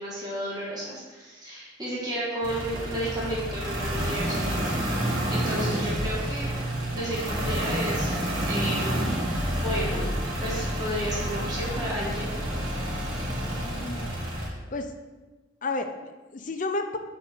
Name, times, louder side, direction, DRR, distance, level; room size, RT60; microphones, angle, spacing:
voice 1, 0.0-6.5 6.9-9.0 9.5-10.0 10.4-12.3, equal, 20° right, -7 dB, 1.6 m, -32 dB
sound 1, 2.4-14.5, right 1 dB, 85° right, 1.8 m, -29 dB
voice 2, 13.6-14.9 15.6-17.0, left 3 dB, 40° left, 6 dB, 0.5 m, -33 dB
8.3 x 4.0 x 4.3 m, 1.2 s
head